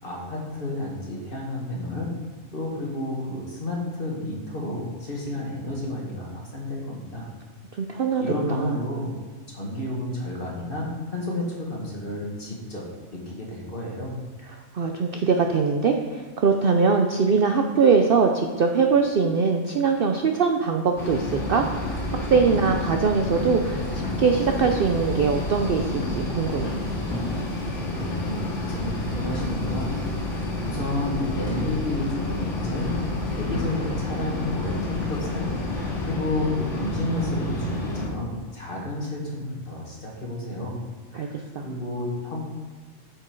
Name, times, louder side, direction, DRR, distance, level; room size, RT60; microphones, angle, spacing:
voice 1, 0.0-2.1 2.5-7.3 8.2-9.1 9.5-14.1 27.9-29.9 30.3-32.9 33.3-35.5 36.0-40.8 41.1-41.4 41.6-42.4, left 1 dB, 40° left, -3 dB, 2.0 m, -31 dB
voice 2, 7.8-8.2 8.5-8.7 14.5-26.8 41.1-41.3 41.5-41.6, right 5 dB, 55° right, 4 dB, 0.6 m, -22 dB
sound 1, 21.0-38.1, left 1 dB, 55° left, 2.7 m, -30 dB
sound 2, 21.8-36.1, left 2 dB, 70° left, 2.2 m, -35 dB
8.6 x 6.7 x 4.6 m, 1.4 s
omnidirectional pair, 1.5 m